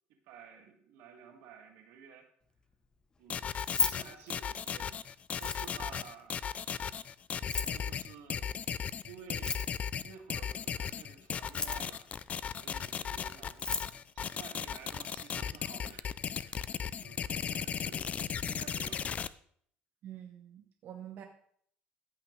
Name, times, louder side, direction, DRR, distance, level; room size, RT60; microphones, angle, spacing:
voice 1, 0.1-2.3 3.2-3.4 3.7-5.0 5.4-7.1 7.5-8.8 9.1-9.6 10.0-12.1 12.5-13.9 14.2-19.2, right 6 dB, 85° right, 3 dB, 1.7 m, -53 dB
sound 1, 3.3-19.3, left 7 dB, 40° left, 0.4 m, -36 dB
Keys jangling, 3.5-4.9 5.3-6.0 7.3-7.8 9.3-10.0 11.3-12.0 13.2-13.3 13.5-13.9, left 4 dB, 20° left, 0.7 m, -35 dB
voice 2, 20.0-21.2, right 10 dB, 60° right, 2 dB, 1.1 m, -47 dB
14.5 x 5.9 x 3.2 m, 0.63 s
cardioid pair, 110°, 4 cm